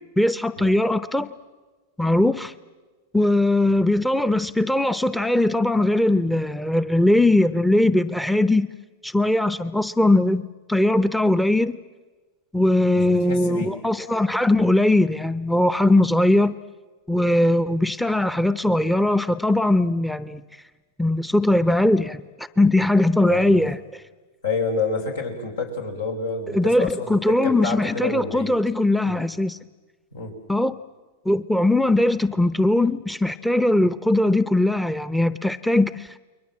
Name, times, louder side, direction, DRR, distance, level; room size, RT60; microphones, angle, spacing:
voice 1, 0.2-1.3 2.0-2.5 3.1-8.7 9.0-11.7 12.5-16.6 17.1-20.4 21.0-23.8 26.5-29.6 30.5-30.7 31.3-36.2, left 1 dB, 5° left, 14 dB, 0.7 m, -20 dB
voice 2, 12.9-13.8 23.2-23.7 24.4-28.5 29.0-29.2 30.1-30.3, left 4 dB, 85° left, 3 dB, 5.4 m, -28 dB
29.5 x 22.0 x 7.6 m, 1.3 s
hypercardioid pair, 105°, 0 cm